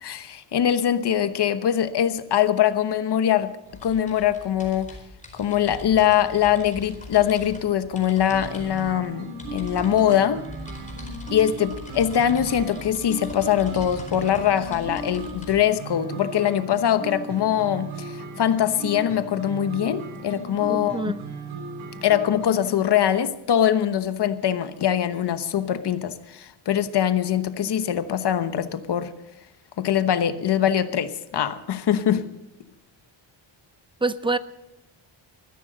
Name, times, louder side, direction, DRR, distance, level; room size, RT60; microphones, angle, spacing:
voice 1, 0.0-3.5 3.8-4.9 5.3-10.5 11.3-21.0 22.0-29.1 29.8-32.3, left 10 dB, 55° left, 1.1 m, -22 dB
sound 1, 3.6-15.6, left 2 dB, 15° left, 4.4 m, -42 dB
sound 2, 8.3-22.7, right 2 dB, 85° right, 3.4 m, -37 dB
voice 2, 20.7-21.2 34.0-34.4, right 3 dB, 10° right, 0.5 m, -25 dB
20.5 x 14.5 x 4.0 m
wide cardioid pair, 135°, 47 cm